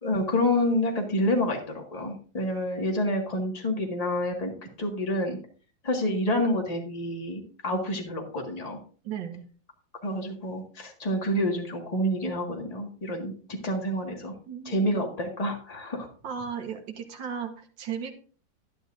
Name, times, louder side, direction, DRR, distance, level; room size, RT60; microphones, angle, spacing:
voice 1, 0.0-5.4 5.8-8.8 10.0-13.3 13.6-14.3 14.7-16.1, left 1 dB, 20° left, 1 dB, 1.7 m, -28 dB
voice 2, 9.0-9.4 14.5-15.1 16.2-18.1, right 7 dB, 80° right, 4 dB, 1.9 m, -36 dB
11.0 x 10.5 x 2.6 m, 0.40 s
omnidirectional pair, 2.0 m